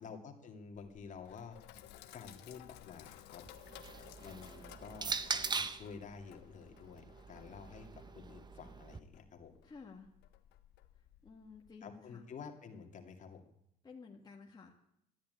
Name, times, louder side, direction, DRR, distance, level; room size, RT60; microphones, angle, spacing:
voice 1, 0.0-1.7 2.1-3.4 4.2-9.5 11.8-13.4, left 5 dB, 45° left, 4 dB, 2.4 m, -50 dB
Sink (filling or washing), 0.7-11.7, left 12 dB, 85° left, 1.3 m, -57 dB
sound 1, 3.5-5.9 6.9-9.0, right 4 dB, 25° right, 0.9 m, -41 dB
voice 2, 9.6-10.1 11.2-12.2 13.8-14.8, left 4 dB, 25° left, 0 dB, 1.7 m, -53 dB
13.0 x 10.0 x 9.4 m, 0.77 s
cardioid pair, 110°, 17 cm